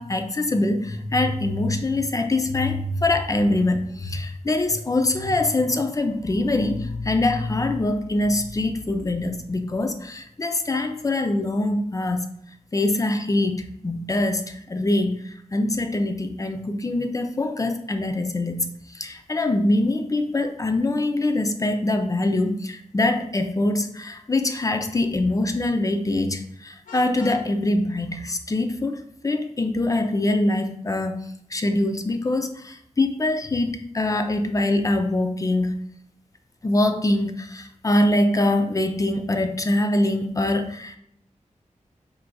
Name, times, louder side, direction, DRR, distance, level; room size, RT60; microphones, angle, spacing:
voice 1, 0.0-12.3 12.7-13.6 13.8-35.7 36.6-41.0, left 2 dB, 25° left, 7 dB, 0.4 m, -24 dB
Vehicle horn car horn honking, 26.8-27.5, left 4 dB, 85° left, 0.6 m, -42 dB
4.4 x 2.5 x 2.2 m, 0.70 s
wide cardioid pair, 65°, 13 cm